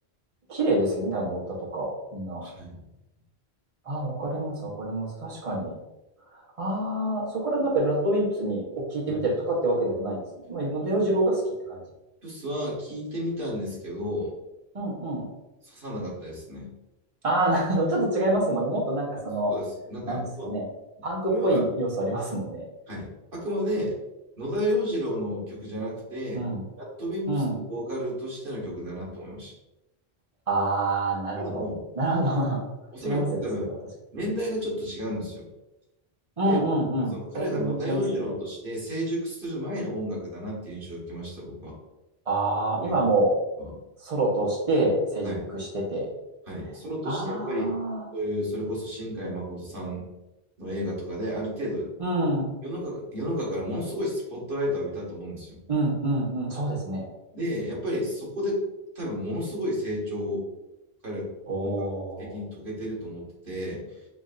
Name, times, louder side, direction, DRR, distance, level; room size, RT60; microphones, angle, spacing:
voice 1, 0.5-2.4 3.8-5.7 6.3-10.2 10.5-11.4 11.7-11.8 14.7-15.3 17.2-19.5 20.1-20.7 21.0-22.6 26.3-26.6 27.3-27.6 30.5-31.7 31.9-32.6 33.0-33.7 36.4-38.3 42.3-43.4 44.0-46.1 47.0-48.0 52.0-52.6 55.7-57.1 61.5-62.3, right 1 dB, 35° right, -4 dB, 1.1 m, -27 dB
voice 2, 2.4-2.8 9.1-9.2 10.8-10.9 11.2-11.3 12.2-14.3 15.6-16.7 19.5-20.5 21.0-21.6 22.9-23.1 23.3-23.9 24.4-26.4 26.8-29.5 31.4-31.8 32.9-33.7 34.1-35.5 36.4-36.6 37.1-41.7 42.8-43.0 43.6-43.7 45.2-45.4 46.5-47.7 48.1-50.1 50.6-51.9 52.6-55.6 57.3-58.7 58.9-60.5 61.0-61.3 61.6-61.8 62.2-64.0, equal, 55° right, -5 dB, 1.5 m, -32 dB
6.0 x 2.7 x 2.5 m, 0.97 s
omnidirectional pair, 1.1 m